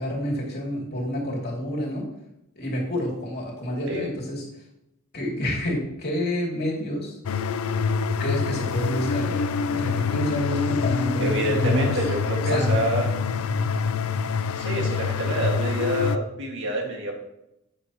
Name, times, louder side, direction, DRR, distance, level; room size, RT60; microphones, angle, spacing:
voice 1, 0.0-2.1 2.6-4.4 5.1-7.2 8.2-9.5 9.7-12.0 12.4-12.8, equal, 50° left, -2 dB, 2.7 m, -28 dB
sound 1, 7.2-16.2, left 5 dB, 85° left, 0.5 m, -26 dB
voice 2, 11.2-13.1 14.6-17.2, right 1 dB, 60° right, 0 dB, 1.9 m, -27 dB
9.8 x 8.1 x 3.0 m, 0.84 s
head